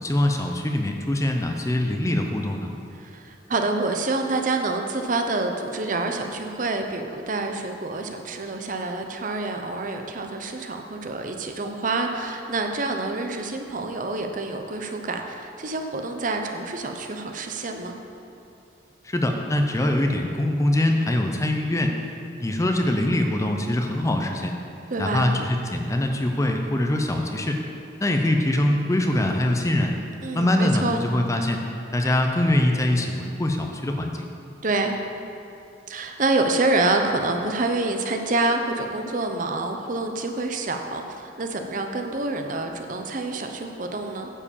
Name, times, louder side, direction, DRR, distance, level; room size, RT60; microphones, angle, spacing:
voice 1, 0.0-2.7 19.0-21.9 22.4-24.5 25.0-27.6 28.0-29.9 30.3-31.6 31.9-34.3, left 1 dB, 15° left, 3 dB, 0.5 m, -23 dB
voice 2, 2.9-17.9 24.9-25.3 30.2-31.0 34.6-35.0 35.9-44.3, right 2 dB, 45° right, 4 dB, 0.7 m, -27 dB
9.8 x 4.9 x 7.1 m, 2.8 s
head